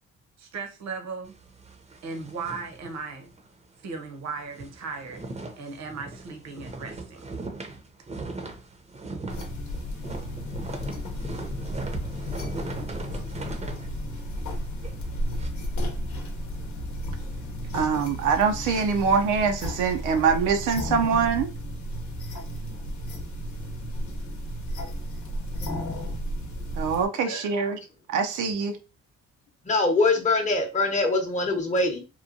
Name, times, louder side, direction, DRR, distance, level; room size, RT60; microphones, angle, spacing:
voice 1, 0.4-1.3 2.0-3.3 3.8-5.2 5.6-7.2 17.2-17.3 17.6-17.7 19.0-19.1, right 4 dB, 60° right, 0.9 m, -37 dB
sound 1, 1.2-3.5 3.8-4.0 4.3-15.5, right 3 dB, 20° right, 0.6 m, -39 dB
sound 2, 9.3-27.1, equal, 70° left, 0.8 m, -33 dB
voice 2, 17.7-21.5 26.8-27.8 28.1-28.8, right 6 dB, 85° right, 0.6 m, -24 dB
voice 3, 29.7-32.0, left 3 dB, 25° left, 0.8 m, -23 dB
2.9 x 2.2 x 2.5 m
cardioid pair, 90°, 30 cm